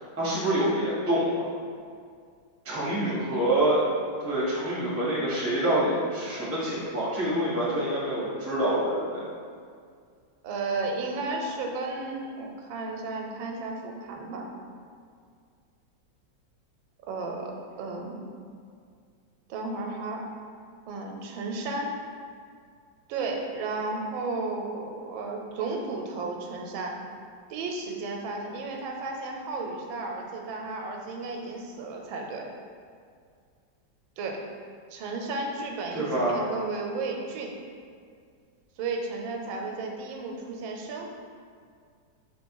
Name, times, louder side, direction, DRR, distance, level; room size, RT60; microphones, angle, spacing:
voice 1, 0.2-1.5 2.6-3.8 4.2-9.2 35.9-36.4, right 1 dB, 15° right, -8 dB, 0.6 m, -26 dB
voice 2, 10.4-14.5 17.1-18.2 19.5-20.3 20.9-21.9 23.1-27.0 27.5-32.4 34.2-34.4 34.9-37.5 38.8-41.1, right 3 dB, 90° right, 2 dB, 1.4 m, -33 dB
3.2 x 3.0 x 4.5 m, 2.2 s
omnidirectional pair, 2.1 m